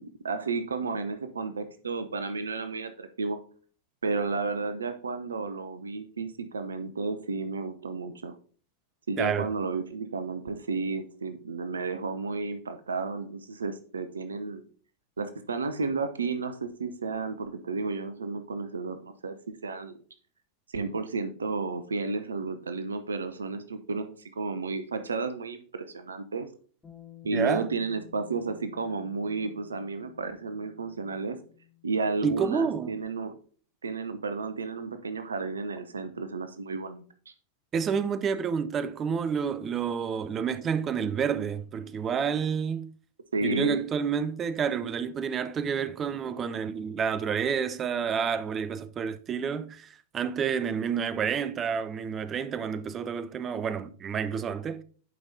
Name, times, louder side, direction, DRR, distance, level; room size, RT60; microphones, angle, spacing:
voice 1, 0.0-3.4 4.0-8.3 9.1-14.6 15.2-19.4 19.6-20.0 20.7-26.5 27.2-31.4 31.8-33.3 33.8-37.0 43.3-43.8, right 4 dB, 70° right, 0.7 m, -32 dB
voice 2, 9.2-9.5 27.3-27.7 32.2-33.0 37.7-42.9 43.4-54.8, right 7 dB, 25° right, 0.5 m, -29 dB
Bass guitar, 26.8-33.1, left 13 dB, 15° left, 2.7 m, -54 dB
11.0 x 5.2 x 2.7 m
figure-of-eight pair, 90°, 0 cm